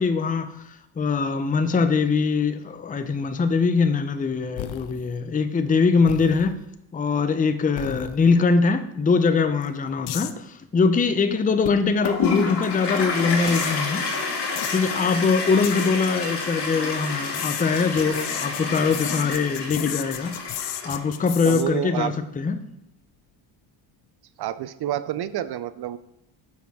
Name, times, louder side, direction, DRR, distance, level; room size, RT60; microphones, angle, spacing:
voice 1, 0.0-6.5 6.9-14.1 14.7-20.3 20.6-22.6, left 4 dB, 15° left, 9 dB, 0.6 m, -22 dB
sound 1, 4.6-5.1 6.1-6.6 7.8-8.4 9.6-9.7 10.1-10.3 11.6-11.8 12.0-12.2 13.5-13.7 14.6-14.8 15.6-15.9 17.3-21.6, left 14 dB, 75° left, 0.7 m, -34 dB
Toilet flush, 12.0-21.3, left 4 dB, 55° left, 1.9 m, -29 dB
voice 2, 21.4-22.1 24.4-26.0, right 12 dB, 55° right, 15 dB, 0.5 m, -28 dB
8.4 x 6.3 x 3.6 m, 0.79 s
cardioid pair, 90°, 49 cm